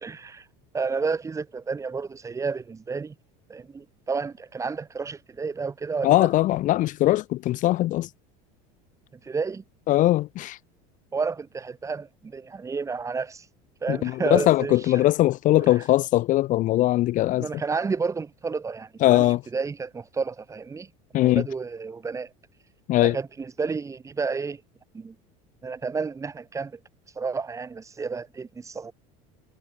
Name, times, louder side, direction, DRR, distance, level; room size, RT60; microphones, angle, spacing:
voice 1, 0.0-0.5 0.7-3.1 3.5-6.3 9.2-9.6 11.1-13.5 13.8-15.1 15.6-15.8 17.4-22.3 23.0-24.6 24.9-25.2 25.6-26.8 27.2-28.9, right 4 dB, 15° right, 2.4 m, -31 dB
voice 2, 6.0-8.1 9.9-10.6 13.9-17.5 19.0-19.4 21.1-21.4 22.9-23.2, left 16 dB, 45° left, 0.8 m, -21 dB
cardioid pair, 140°, 18 cm